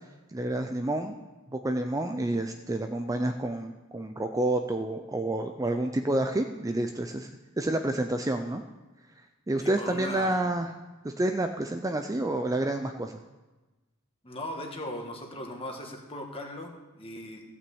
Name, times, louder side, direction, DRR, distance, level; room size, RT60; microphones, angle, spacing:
voice 1, 0.3-1.1 1.5-7.3 7.6-8.6 9.5-10.7 11.0-13.2, right 1 dB, 15° right, 6 dB, 0.5 m, -29 dB
voice 2, 9.6-10.4 14.2-17.4, left 1 dB, 25° left, 2 dB, 1.8 m, -38 dB
14.5 x 6.1 x 7.9 m, 1.1 s
head